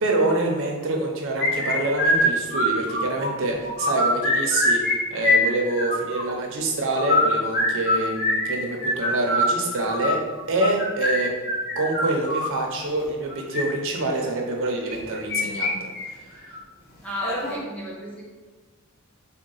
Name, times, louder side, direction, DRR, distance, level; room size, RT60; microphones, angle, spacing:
voice 1, 0.0-10.2 10.5-11.3 11.8-15.8 16.1-16.2, right 2 dB, 65° right, 1 dB, 0.6 m, -26 dB
sound 1, 1.4-3.3 3.6-4.9 5.2-6.2 6.9-12.6 13.3-13.6 14.9-15.7 16.0-16.1 16.5-16.6 17.2-17.6, left 1 dB, 45° left, 0.8 m, -23 dB
voice 2, 17.0-18.2, left 1 dB, 5° left, -6 dB, 0.9 m, -33 dB
3.6 x 2.2 x 3.9 m, 1.4 s
head